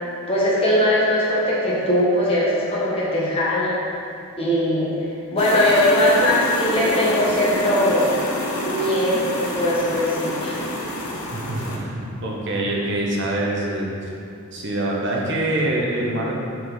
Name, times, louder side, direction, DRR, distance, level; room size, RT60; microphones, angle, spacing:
voice 1, 0.3-3.8 4.4-4.9 5.3-8.3 8.6-10.6, left 1 dB, 25° left, -7 dB, 1.2 m, -20 dB
sound 1, 5.4-11.8, left 1 dB, 80° left, 0.9 m, -28 dB
voice 2, 11.3-13.9 14.5-16.3, right 1 dB, 55° right, -3 dB, 0.9 m, -25 dB
6.3 x 4.6 x 3.8 m, 2.5 s
head